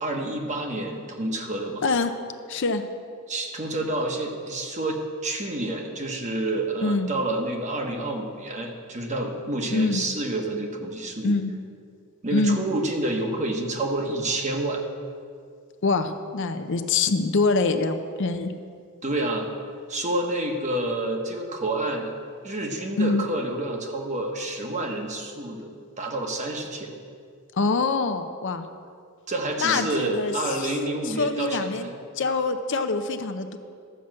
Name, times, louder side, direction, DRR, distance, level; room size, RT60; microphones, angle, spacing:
voice 1, 0.0-1.8 3.3-11.4 12.2-14.8 19.0-19.5 19.9-22.1 22.4-26.9 29.3-31.9, right 2 dB, 30° right, 2 dB, 1.1 m, -28 dB
voice 2, 1.8-2.1 2.5-2.8 6.8-7.1 9.7-10.0 11.2-11.5 12.3-12.6 15.8-18.5 23.0-23.2 27.5-28.7 29.6-30.7 31.1-31.9 32.2-33.6, left 3 dB, 55° left, 8 dB, 0.6 m, -24 dB
12.5 x 5.9 x 7.5 m, 2.3 s
head